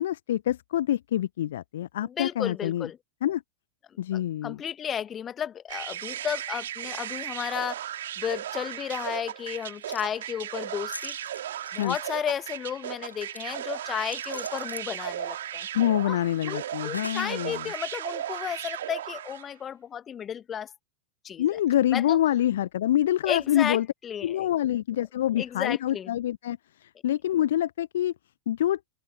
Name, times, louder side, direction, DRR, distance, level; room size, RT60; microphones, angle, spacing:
voice 1, 0.0-2.9 3.2-3.4 4.0-4.6 11.8-12.0 15.7-17.7 21.4-23.9 24.2-28.1 28.5-28.8, left 12 dB, 60° left, 1.0 m, -26 dB
voice 2, 2.0-3.0 4.1-7.9 8.2-11.2 11.7-15.7 16.1-16.2 16.4-20.7 21.2-21.5 21.9-22.2 23.2-23.8 24.0-24.8 25.4-26.1, left 8 dB, 25° left, 1.8 m, -33 dB
sound 1, 5.7-19.5, right 11 dB, 60° right, 3.8 m, -36 dB
sound 2, 9.6-10.1 10.9-12.1 13.1-13.5 14.1-15.0 16.9-17.4 17.9-18.0, left 2 dB, 85° left, 1.9 m, -42 dB
open air
figure-of-eight pair, 90°, 0 cm